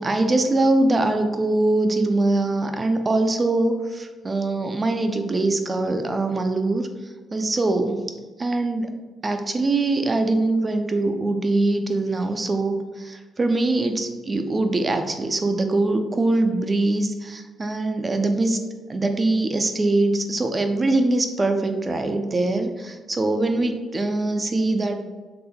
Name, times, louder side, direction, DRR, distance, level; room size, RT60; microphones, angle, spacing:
voice 1, 0.0-6.9 7.3-8.0 8.4-8.9 9.2-18.6 18.9-25.0, right 2 dB, 30° right, 6 dB, 0.5 m, -22 dB
5.8 x 3.4 x 2.3 m, 1.3 s
cardioid pair, 90°, 0 cm